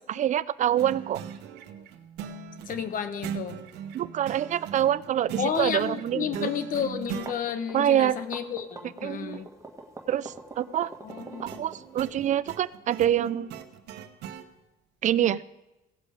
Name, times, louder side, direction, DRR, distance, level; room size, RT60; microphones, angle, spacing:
voice 1, 0.1-1.2 3.9-6.5 7.7-8.2 9.0-9.4 10.1-10.9 11.4-13.5 15.0-15.4, right 11 dB, 45° right, 19 dB, 0.4 m, -26 dB
sound 1, 0.8-7.3 11.1-14.5, right 8 dB, 85° right, 1.1 m, -40 dB
voice 2, 2.7-3.6 5.4-9.5 11.0-11.6, left 7 dB, 55° left, 10 dB, 1.1 m, -31 dB
sound 2, 7.0-12.2, right 3 dB, 20° right, 1.7 m, -44 dB
17.0 x 7.5 x 5.1 m, 1.0 s
cardioid pair, 110°, 17 cm